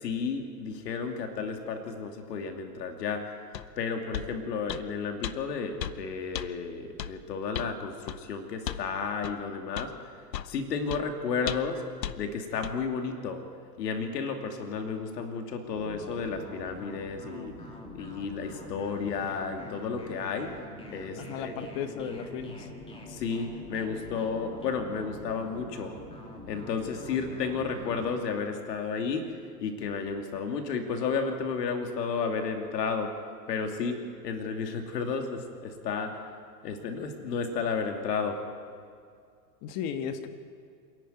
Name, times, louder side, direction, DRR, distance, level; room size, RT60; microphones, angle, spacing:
voice 1, 0.0-3.2 3.8-9.9 10.4-11.8 12.2-13.4 13.8-17.5 17.9-20.5 20.9-21.5 23.1-25.9 26.5-33.1 33.5-34.0 34.2-36.2 36.6-38.4, left 5 dB, 70° left, 4 dB, 2.8 m, -32 dB
sound 1, 3.5-3.7 4.1-4.3 4.7-4.9 5.2-5.4 5.8-6.0 6.3-6.5 7.0-7.1 7.5-7.7 8.1-8.2 8.7-8.9 9.2-9.4 9.8-9.9 10.3-10.5 10.9-11.0 11.5-11.7 12.0-12.2 12.6-12.8, left 10 dB, 90° left, 0.9 m, -35 dB
sound 2, 15.7-28.2, left 1 dB, 10° left, 2.7 m, -45 dB
voice 2, 21.2-22.6 39.6-40.3, left 7 dB, 35° left, 9 dB, 1.4 m, -35 dB
26.5 x 11.0 x 9.3 m, 2.2 s
hypercardioid pair, 135°, 50 cm